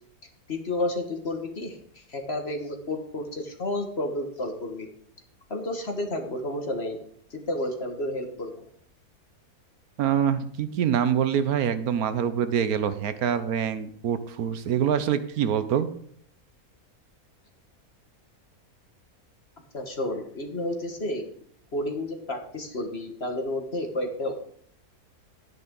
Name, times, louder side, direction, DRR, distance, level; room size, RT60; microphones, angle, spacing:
voice 1, 0.5-4.9 5.5-7.0 7.3-8.7 19.7-21.3 21.7-24.4, left 1 dB, 45° left, 4 dB, 1.8 m, -31 dB
voice 2, 10.0-15.9, right 8 dB, 75° right, 12 dB, 1.2 m, -25 dB
11.5 x 9.5 x 3.8 m, 0.65 s
omnidirectional pair, 1.6 m